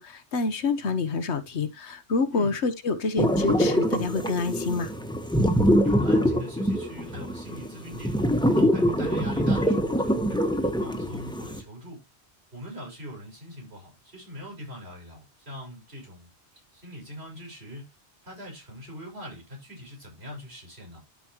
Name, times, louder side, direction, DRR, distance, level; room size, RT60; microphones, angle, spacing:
voice 1, 0.0-4.9, left 4 dB, 75° left, 1.4 m, -27 dB
sound 1, 3.2-11.6, equal, 5° left, 1.2 m, -24 dB
voice 2, 5.8-8.2 8.5-12.0 12.5-17.9 18.2-21.0, equal, 65° right, 6.4 m, -42 dB
12.5 x 5.2 x 3.0 m
omnidirectional pair, 1.2 m